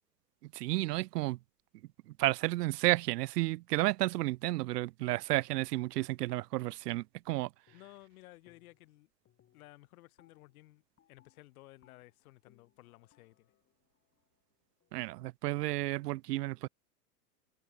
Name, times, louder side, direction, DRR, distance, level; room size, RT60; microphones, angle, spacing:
voice 1, 0.5-1.4 2.2-7.5 14.9-16.7, right 18 dB, 75° right, 0.6 m, -32 dB
voice 2, 7.7-9.1 9.5-10.8 11.1-13.5, left 18 dB, 60° left, 2.5 m, -56 dB
sound 1, 7.7-8.1 8.4-8.9 9.2-15.1, left 11 dB, 25° left, 6.0 m, -71 dB
hypercardioid pair, 130°, 48 cm